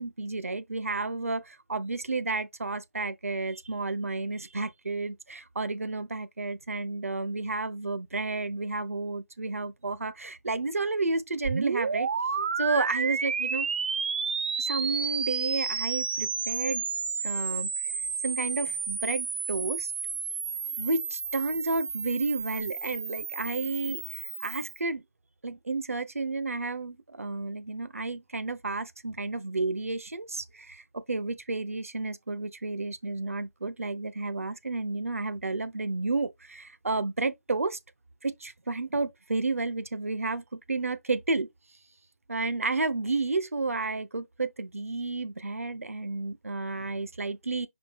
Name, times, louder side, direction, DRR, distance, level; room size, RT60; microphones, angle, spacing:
voice 1, 0.0-13.7 14.6-16.8 17.2-17.7 18.2-19.9 20.8-25.0 25.4-37.8 38.2-41.5 42.3-47.7, right 3 dB, 65° right, 1.0 m, -31 dB
sound 1, 11.4-24.8, right 5 dB, 40° right, 0.5 m, -31 dB
5.0 x 3.4 x 5.6 m
figure-of-eight pair, 150°, 8 cm